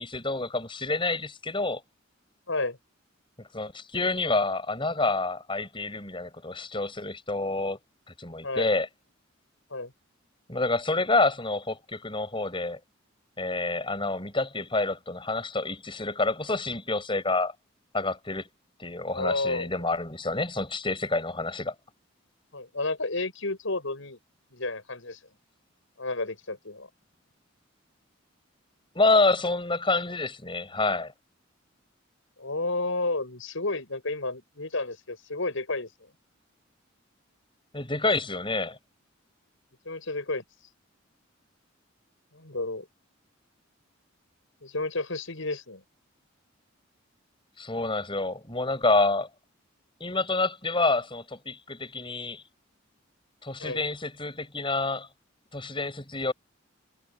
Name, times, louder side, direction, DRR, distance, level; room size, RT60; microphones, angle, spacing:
voice 1, 0.0-1.8 3.4-7.8 8.2-8.9 10.5-12.8 13.4-17.5 17.9-18.5 18.8-21.7 28.9-31.1 37.7-38.8 47.6-49.3 50.0-52.4 53.4-55.1 55.5-56.3, left 3 dB, 25° left, 6.6 m, -28 dB
voice 2, 2.5-2.8 8.4-8.7 9.7-9.9 19.1-19.7 22.5-24.2 24.5-25.2 26.0-26.9 32.4-35.9 39.8-40.4 42.3-42.9 44.6-45.8 53.6-53.8, left 2 dB, 70° left, 6.2 m, -31 dB
head